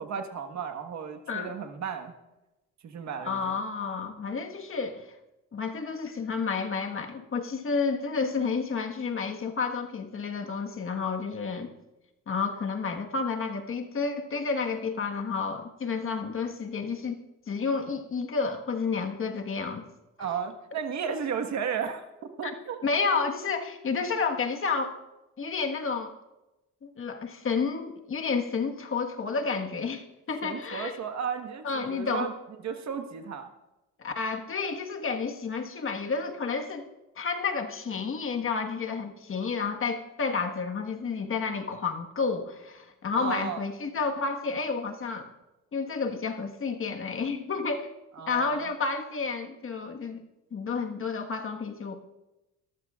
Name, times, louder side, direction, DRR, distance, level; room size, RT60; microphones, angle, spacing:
voice 1, 0.0-2.1 2.8-3.6 20.2-22.0 22.4-22.8 30.4-32.3 32.6-33.5 43.2-43.6 48.2-48.7, right 7 dB, 65° right, 5 dB, 1.5 m, -34 dB
voice 2, 3.2-5.1 5.5-11.7 12.3-17.2 17.5-19.8 22.4-22.5 22.8-25.0 25.4-26.1 26.8-30.0 30.3-31.0 31.6-32.3 34.0-36.9 37.2-45.3 45.7-47.9 48.3-50.2 50.5-51.9, left 5 dB, 45° left, 4 dB, 1.5 m, -30 dB
23.5 x 13.5 x 2.4 m, 1.0 s
cardioid pair, 90°, 30 cm